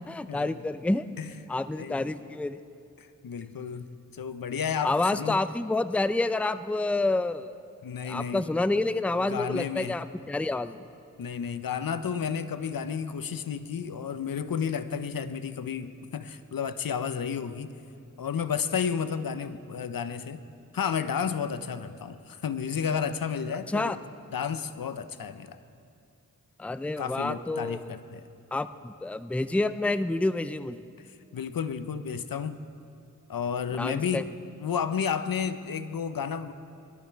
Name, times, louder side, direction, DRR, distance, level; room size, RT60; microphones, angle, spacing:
voice 1, 0.1-1.0 1.5-2.6 4.8-7.5 8.0-10.8 23.7-24.0 26.6-27.9 28.5-30.8 33.8-34.2, left 2 dB, 5° left, 12 dB, 0.5 m, -28 dB
voice 2, 1.7-2.1 3.0-3.9 4.1-5.4 7.8-8.4 9.2-10.0 11.2-17.7 18.2-20.4 20.7-24.0 24.3-25.6 27.0-28.2 31.3-32.6 33.3-34.3 34.6-36.5, left 7 dB, 75° left, 11 dB, 0.7 m, -32 dB
21.0 x 12.5 x 4.6 m, 2.6 s
cardioid pair, 45°, 34 cm